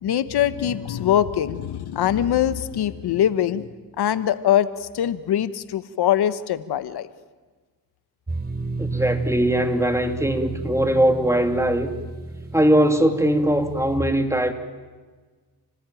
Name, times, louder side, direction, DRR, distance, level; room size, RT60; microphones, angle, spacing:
voice 1, 0.0-3.7 4.0-7.1, left 10 dB, 85° left, 13 dB, 1.1 m, -22 dB
sound 1, 8.3-14.0, right 3 dB, 25° right, 3.5 m, -32 dB
voice 2, 8.8-11.9 12.5-14.5, right 1 dB, 5° right, 5 dB, 2.8 m, -20 dB
29.0 x 19.5 x 9.1 m, 1.4 s
cardioid pair, 70°, 38 cm